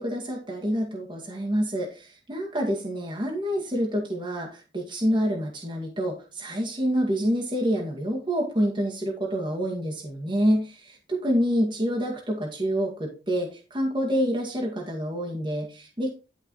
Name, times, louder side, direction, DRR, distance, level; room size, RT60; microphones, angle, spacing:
voice 1, 0.0-16.1, equal, 25° right, -2 dB, 2.1 m, -27 dB
11.5 x 5.2 x 4.7 m, 0.32 s
head